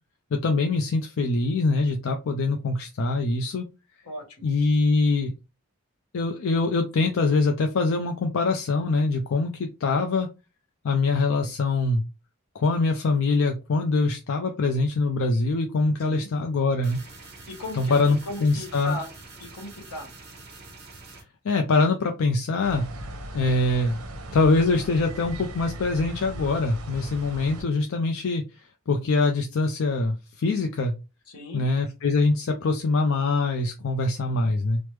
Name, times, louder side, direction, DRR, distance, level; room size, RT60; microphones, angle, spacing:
voice 1, 0.3-3.7 4.4-5.3 6.1-10.3 10.8-12.0 12.5-17.0 17.8-19.0 21.4-22.8 23.3-24.0 24.3-28.4 28.9-30.9 31.5-34.8, left 3 dB, 60° left, 4 dB, 0.4 m, -23 dB
voice 2, 4.0-4.5 16.0-16.3 17.5-19.1 19.4-20.1 31.3-31.6, left 1 dB, 85° left, 1 dB, 1.2 m, -37 dB
sound 1, 16.8-21.2, right 3 dB, 45° right, 0.9 m, -46 dB
sound 2, 22.6-27.6, right 1 dB, 80° right, 0.7 m, -38 dB
3.3 x 2.0 x 3.1 m, 0.28 s
head